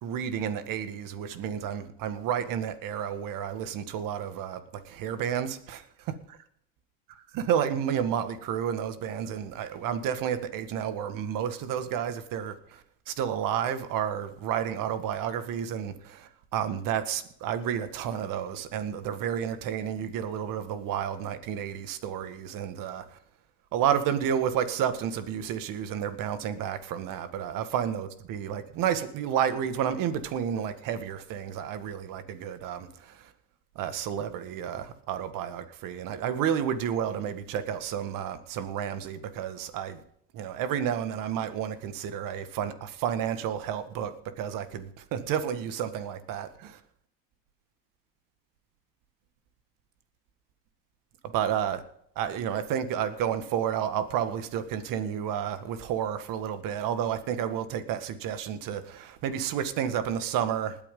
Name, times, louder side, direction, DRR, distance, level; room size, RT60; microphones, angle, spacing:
voice 1, 0.0-6.1 7.3-23.2 23.7-33.3 33.8-40.0 40.3-46.8 51.3-51.8 52.2-60.8, right 9 dB, 55° right, 10 dB, 1.9 m, -31 dB
20.0 x 9.0 x 3.8 m, 0.67 s
supercardioid pair, 105°, 38 cm